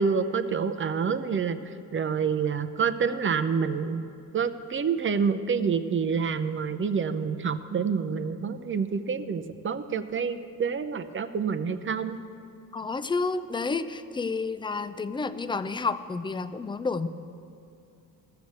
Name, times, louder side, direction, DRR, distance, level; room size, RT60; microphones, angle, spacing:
voice 1, 0.0-1.6 1.9-4.0 4.3-12.2, right 6 dB, 35° right, 11 dB, 0.7 m, -27 dB
voice 2, 12.7-17.1, left 4 dB, 15° left, 12 dB, 0.4 m, -30 dB
14.0 x 6.9 x 8.1 m, 2.6 s
cardioid pair, 90°, 36 cm